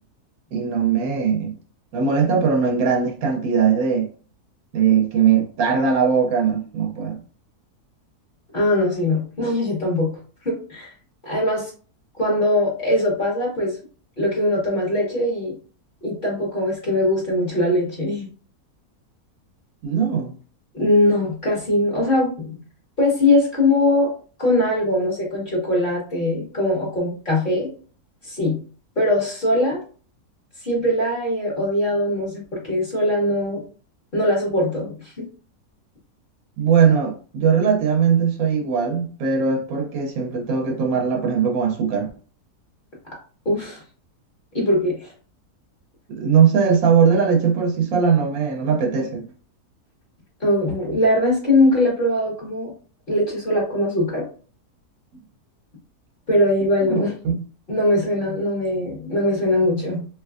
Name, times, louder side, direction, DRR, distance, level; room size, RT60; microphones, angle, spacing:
voice 1, 0.5-1.5 1.9-4.1 4.7-7.2 19.8-20.3 36.6-42.1 46.1-49.3 56.9-57.4, right 6 dB, 70° right, 1.0 m, -20 dB
voice 2, 8.5-10.1 10.4-10.9 11.2-11.7 12.2-13.8 14.2-15.5 16.0-18.3 20.7-22.6 23.0-24.1 24.4-27.7 28.2-28.6 29.0-29.8 30.6-33.6 34.1-35.2 43.4-43.8 44.5-45.1 50.4-52.7 53.1-54.3 56.3-57.1 57.7-60.0, left 1 dB, 35° left, 1.2 m, -21 dB
3.3 x 2.9 x 2.3 m
omnidirectional pair, 1.7 m